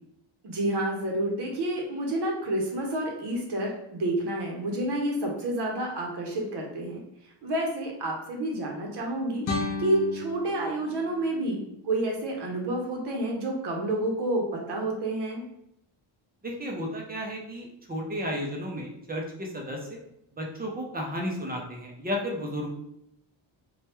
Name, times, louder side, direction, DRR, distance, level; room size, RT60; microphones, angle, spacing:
voice 1, 0.4-7.0 7.4-15.4, right 1 dB, 55° right, 0 dB, 0.7 m, -29 dB
sound 1, 9.4-12.5, left 3 dB, 45° left, 0.5 m, -35 dB
voice 2, 16.4-20.0 20.4-22.7, equal, 20° right, 0 dB, 0.4 m, -33 dB
3.2 x 2.2 x 2.9 m, 0.79 s
wide cardioid pair, 160°, 49 cm